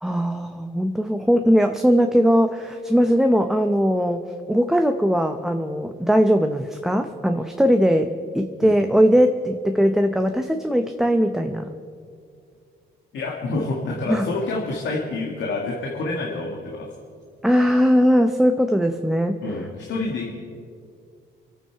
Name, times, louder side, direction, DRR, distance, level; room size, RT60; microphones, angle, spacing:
voice 1, 0.0-4.2 4.5-11.8 14.1-14.3 17.4-19.3, equal, ahead, 5 dB, 0.7 m, -20 dB
voice 2, 13.1-16.9 19.4-20.3, left 2 dB, 70° left, -1 dB, 1.9 m, -27 dB
25.5 x 9.0 x 4.6 m, 2.3 s
cardioid pair, 90°, 20 cm